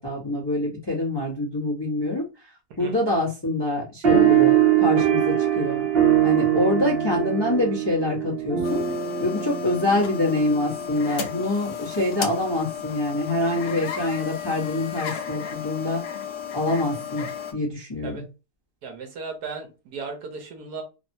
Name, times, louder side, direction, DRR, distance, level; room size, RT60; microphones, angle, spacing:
voice 1, 0.0-2.3 2.8-5.8 6.2-8.9 9.2-16.0 16.5-17.3 17.5-18.2, left 2 dB, 20° left, 0.7 m, -25 dB
sound 1, 4.0-10.9, right 11 dB, 50° right, 0.7 m, -22 dB
sound 2, 8.6-17.5, left 8 dB, 75° left, 1.1 m, -34 dB
voice 2, 18.8-20.8, right 4 dB, 75° right, 1.2 m, -36 dB
3.2 x 2.0 x 2.6 m
omnidirectional pair, 1.8 m